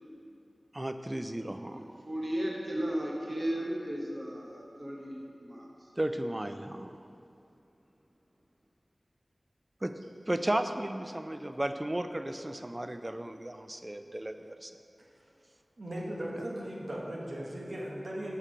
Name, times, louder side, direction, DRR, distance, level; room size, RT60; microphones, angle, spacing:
voice 1, 0.7-2.0 6.0-7.0 9.8-9.9 10.3-14.7 16.4-16.5, right 1 dB, 25° right, 8 dB, 0.4 m, -34 dB
voice 2, 1.7-5.6, right 1 dB, 40° right, -2 dB, 0.9 m, -35 dB
voice 3, 15.8-18.4, equal, 65° right, -3 dB, 1.2 m, -37 dB
6.5 x 5.7 x 5.0 m, 2.7 s
wide cardioid pair, 70°, 0 cm